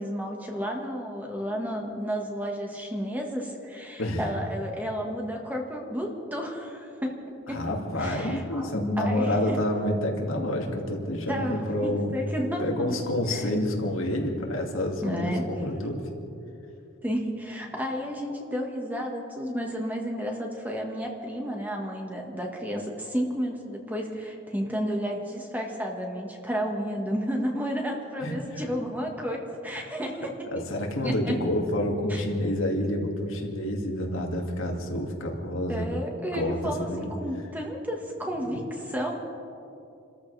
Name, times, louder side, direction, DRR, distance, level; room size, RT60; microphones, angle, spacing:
voice 1, 0.0-7.2 7.5-7.6 8.0-9.6 11.3-13.0 13.3-13.4 15.0-15.5 17.0-30.3 31.0-31.4 32.1-32.2 35.7-39.2, equal, 10° right, 0 dB, 1.5 m, -32 dB
voice 2, 7.5-12.2 12.6-16.1 28.2-28.7 29.0-29.1 30.5-36.0 36.3-37.1, left 1 dB, 85° left, 1 dB, 2.3 m, -28 dB
29.0 x 14.0 x 3.4 m, 2.8 s
head